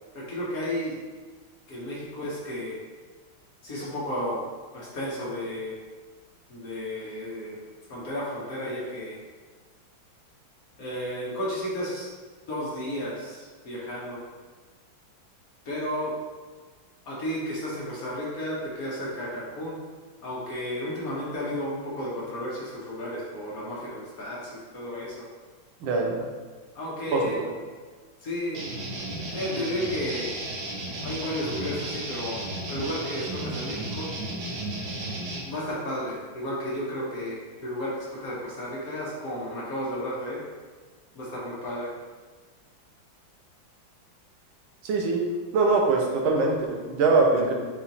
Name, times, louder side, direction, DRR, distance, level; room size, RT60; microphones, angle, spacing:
voice 1, 0.1-0.9 1.7-2.8 3.6-4.4 4.7-5.7 6.5-7.6 7.9-9.2 10.8-12.1 12.5-13.4 13.6-14.2 15.7-16.1 17.1-19.8 20.2-25.1 26.8-27.4 28.2-28.6 29.3-30.3 31.0-32.4 32.7-34.1 35.5-40.4 41.1-41.9, equal, 55° left, -6 dB, 1.1 m, -33 dB
voice 2, 25.8-26.2 27.1-27.5 44.8-45.2 45.5-47.5, right 3 dB, 90° right, 0 dB, 1.5 m, -23 dB
sound 1, 28.5-35.4, right 1 dB, 60° right, 1.2 m, -34 dB
6.7 x 2.4 x 2.9 m, 1.5 s
omnidirectional pair, 2.2 m